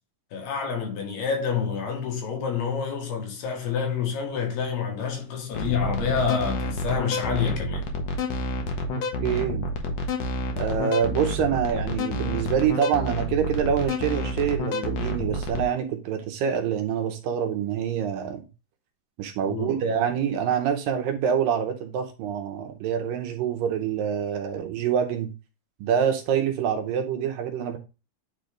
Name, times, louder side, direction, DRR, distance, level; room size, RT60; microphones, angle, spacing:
voice 1, 0.3-7.9 19.5-20.0, left 6 dB, 85° left, 3.7 m, -28 dB
sound 1, 5.5-15.6, left 2 dB, 65° left, 1.6 m, -29 dB
voice 2, 9.2-9.7 10.6-18.4 19.2-25.3 25.8-27.8, right 8 dB, 75° right, 2.4 m, -26 dB
9.5 x 3.3 x 3.8 m
omnidirectional pair, 4.4 m